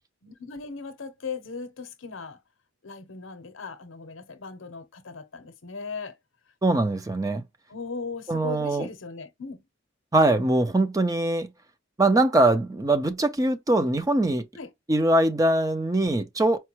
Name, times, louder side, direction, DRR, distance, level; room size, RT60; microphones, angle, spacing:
voice 1, 0.2-2.4 2.8-6.1 7.7-9.6 14.6-14.7, left 4 dB, 75° left, 0.7 m, -38 dB
voice 2, 6.6-7.4 8.3-8.9 10.1-11.5 12.0-14.4 14.9-16.6, right 2 dB, 20° right, 0.5 m, -22 dB
4.5 x 2.2 x 2.9 m
head